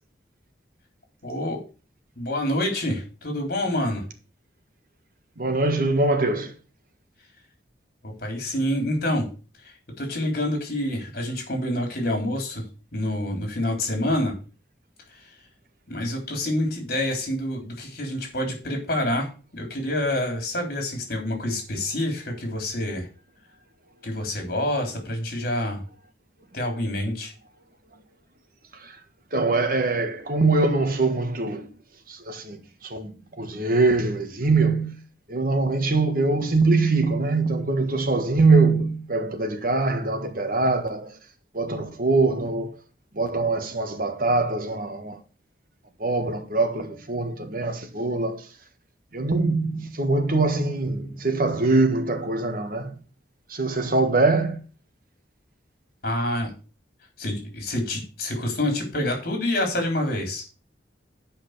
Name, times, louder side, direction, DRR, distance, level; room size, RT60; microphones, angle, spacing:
voice 1, 1.2-1.6 2.2-4.0 8.0-9.3 9.6-12.7 12.9-14.3 15.1-15.3 15.9-19.3 19.5-23.1 24.0-25.8 26.5-27.3 56.0-56.5 57.2-60.4, left 1 dB, 55° left, 3.9 m, -27 dB
voice 2, 5.4-6.5 28.8-28.9 29.3-31.7 32.1-35.0 35.3-41.1 41.5-42.7 43.1-45.2 46.0-48.5 49.1-52.9 53.5-54.6, right 3 dB, 50° right, 1.6 m, -23 dB
8.8 x 5.4 x 6.7 m
head